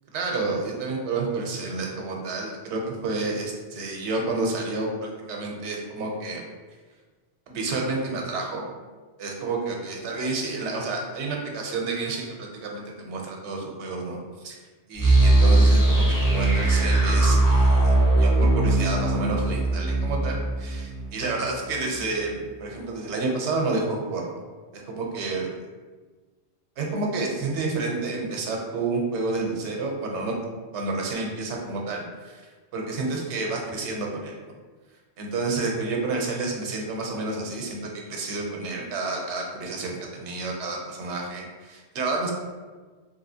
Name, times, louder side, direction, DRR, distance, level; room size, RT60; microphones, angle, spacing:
voice 1, 0.1-6.4 7.5-8.6 9.2-14.2 14.4-14.6 14.9-24.2 24.7-25.5 26.8-30.4 30.7-34.4 35.2-42.3, right 3 dB, 80° right, 0 dB, 0.9 m, -30 dB
sound 1, 15.0-21.8, right 2 dB, 20° left, 0.6 m, -20 dB
3.3 x 2.7 x 2.7 m, 1.4 s
omnidirectional pair, 1.2 m